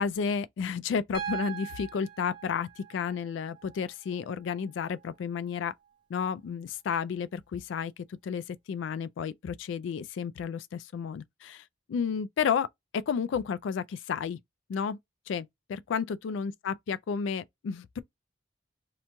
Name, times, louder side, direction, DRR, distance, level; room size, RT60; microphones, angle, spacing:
voice 1, 0.0-5.7 6.1-7.9 8.2-11.6 11.9-12.7 12.9-14.4 14.7-15.0 15.3-18.0, left 6 dB, 75° left, 0.3 m, -32 dB
Piano, 1.1-5.1 6.7-6.8, right 8 dB, 25° right, 0.4 m, -42 dB
2.9 x 2.2 x 2.6 m
head